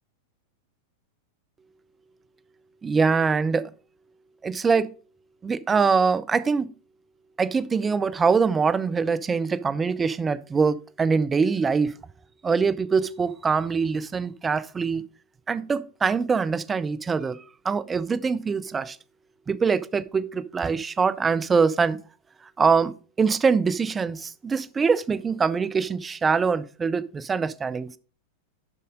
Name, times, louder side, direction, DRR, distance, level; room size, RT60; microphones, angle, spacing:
voice 1, 2.8-3.7 4.4-4.9 5.4-6.7 7.4-11.9 12.4-15.0 15.5-19.0 19.5-22.0 22.6-28.0, right 5 dB, 15° right, 0.4 m, -23 dB
7.2 x 5.5 x 5.0 m
figure-of-eight pair, 90°, 0 cm